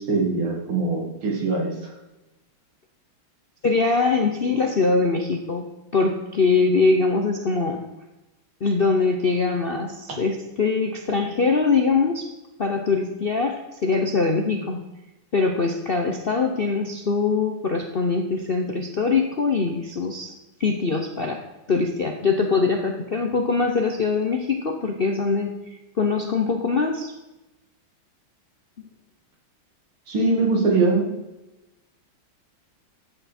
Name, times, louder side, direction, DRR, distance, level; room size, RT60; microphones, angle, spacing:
voice 1, 0.0-1.7 30.1-31.0, right 3 dB, 85° right, -1 dB, 3.2 m, -22 dB
voice 2, 3.6-5.7 5.9-7.8 8.6-12.3 12.6-14.8 15.3-20.3 20.6-21.4 21.7-27.1, left 4 dB, 55° left, 3 dB, 0.6 m, -22 dB
13.0 x 8.2 x 4.3 m, 1.0 s
omnidirectional pair, 2.2 m